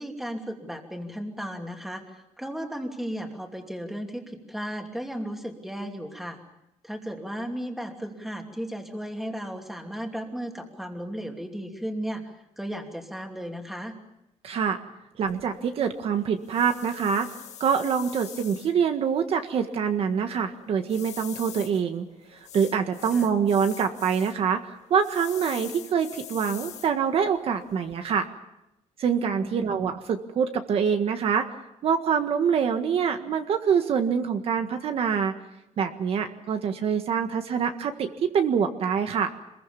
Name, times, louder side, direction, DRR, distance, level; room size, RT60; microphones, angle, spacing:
voice 1, 0.0-6.4 6.8-13.9 23.1-23.3 29.4-29.8, equal, ahead, 3 dB, 2.8 m, -35 dB
voice 2, 14.4-14.8 15.2-17.3 17.6-22.0 22.5-28.3 29.0-31.5 31.8-35.3 35.8-39.3, right 7 dB, 55° right, 7 dB, 1.6 m, -25 dB
sound 1, 15.3-28.3, left 10 dB, 70° left, 1.8 m, -45 dB
26.0 x 21.5 x 7.1 m, 0.89 s
cardioid pair, 165°, 12 cm